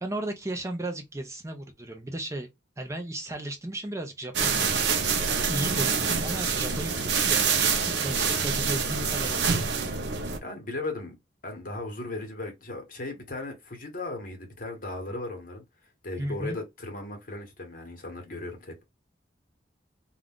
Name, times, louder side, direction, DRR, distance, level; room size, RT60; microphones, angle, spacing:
voice 1, 0.0-2.5 2.8-4.8 5.5-9.7 16.2-16.6, right 1 dB, 15° right, 0.5 m, -35 dB
sound 1, 4.3-10.4, right 5 dB, 65° right, 0.6 m, -26 dB
voice 2, 10.4-11.2 11.4-15.6 16.0-18.8, left 2 dB, 50° left, 1.1 m, -36 dB
2.4 x 2.3 x 3.5 m
head